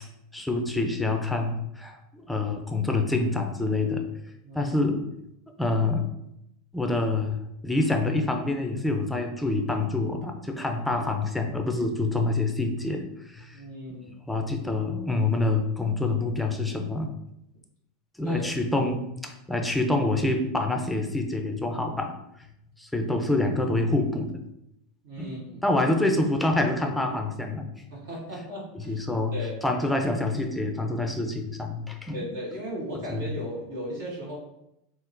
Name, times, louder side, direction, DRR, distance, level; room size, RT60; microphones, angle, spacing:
voice 1, 0.3-4.0 4.5-5.0 5.6-6.1 6.7-7.4 7.6-13.0 13.3-13.5 14.3-17.1 18.2-22.1 22.8-24.4 25.2-25.4 25.6-27.7 28.9-29.3 29.6-32.2 33.1-33.3, left 2 dB, 5° left, 3 dB, 0.5 m, -26 dB
voice 2, 4.4-4.7 13.5-14.1 18.2-18.5 25.0-25.6 27.9-28.9 29.3-29.6 32.1-34.4, equal, 75° right, -6 dB, 1.4 m, -36 dB
3.6 x 2.1 x 2.5 m, 0.82 s
hypercardioid pair, 95°, 0 cm